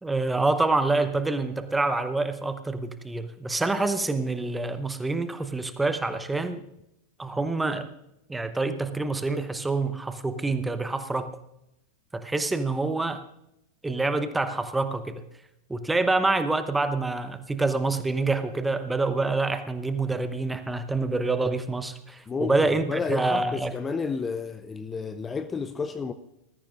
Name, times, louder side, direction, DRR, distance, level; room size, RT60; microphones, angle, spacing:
voice 1, 0.0-6.6 7.2-7.9 8.3-11.3 12.1-13.2 13.8-15.2 15.7-23.7, right 3 dB, 10° right, 0.9 m, -26 dB
voice 2, 22.3-26.1, left 5 dB, 15° left, 0.5 m, -31 dB
20.0 x 13.5 x 2.5 m
figure-of-eight pair, 90°, 0 cm